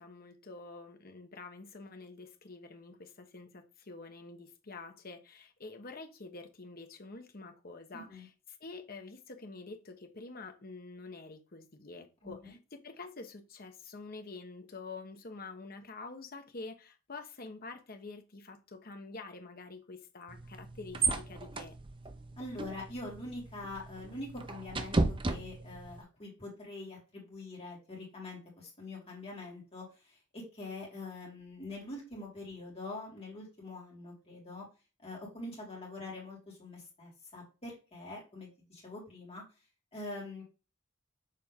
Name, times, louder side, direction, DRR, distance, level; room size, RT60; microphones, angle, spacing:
voice 1, 0.0-8.3 8.6-21.8, left 3 dB, 45° left, 1.0 m, -47 dB
voice 2, 7.9-8.3 12.2-12.5 22.4-34.7 35.0-39.4 39.9-40.4, left 2 dB, 30° left, 3.0 m, -44 dB
sound 1, 20.3-26.0, right 3 dB, 25° right, 0.5 m, -35 dB
6.8 x 4.1 x 3.6 m
head